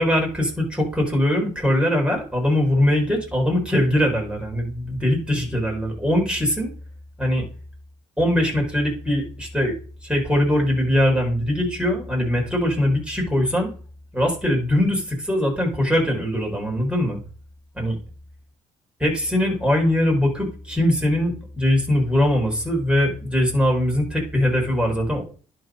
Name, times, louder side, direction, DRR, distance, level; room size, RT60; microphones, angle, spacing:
voice 1, 0.0-6.7 7.2-7.5 8.2-9.7 10.0-13.7 14.1-17.2 17.8-18.0 19.0-25.2, left 1 dB, 5° right, 0 dB, 5.3 m, -21 dB
10.5 x 4.7 x 5.3 m, 0.40 s
hypercardioid pair, 50°, 17 cm